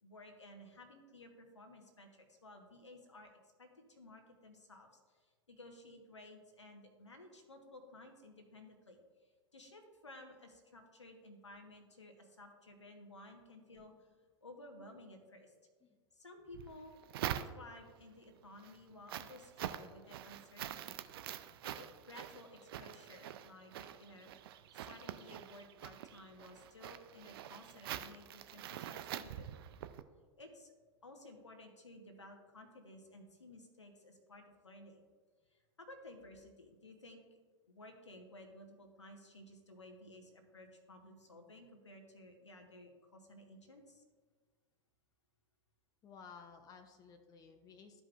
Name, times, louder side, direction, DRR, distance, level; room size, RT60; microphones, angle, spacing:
voice 1, 0.0-3.3 3.6-14.1 14.4-15.5 16.1-17.0 17.5-21.1 21.6-29.6 30.4-30.7 31.0-35.0 35.5-37.4 37.7-44.0, left 1 dB, 80° left, 3 dB, 1.3 m, -56 dB
sound 1, 16.5-18.0 18.4-30.0, right 11 dB, 55° right, 0.5 m, -45 dB
voice 2, 46.0-48.0, left 5 dB, 25° left, 6 dB, 0.7 m, -56 dB
13.5 x 5.0 x 2.5 m, 1.4 s
figure-of-eight pair, 90°, 15 cm